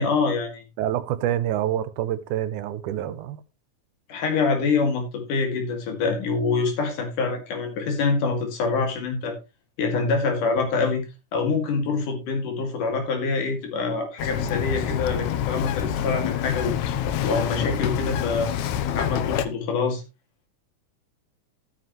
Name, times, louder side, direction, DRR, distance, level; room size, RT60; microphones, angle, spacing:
voice 1, 0.0-0.6 4.1-9.4 9.8-11.0 11.3-16.7 17.2-18.5 19.0-20.0, left 4 dB, 90° left, 3.9 m, -25 dB
voice 2, 0.8-3.4, right 11 dB, 85° right, 2.3 m, -27 dB
Bird vocalization bird call bird song, 14.2-19.5, left 10 dB, 75° left, 2.1 m, -27 dB
13.0 x 9.5 x 3.1 m
omnidirectional pair, 3.6 m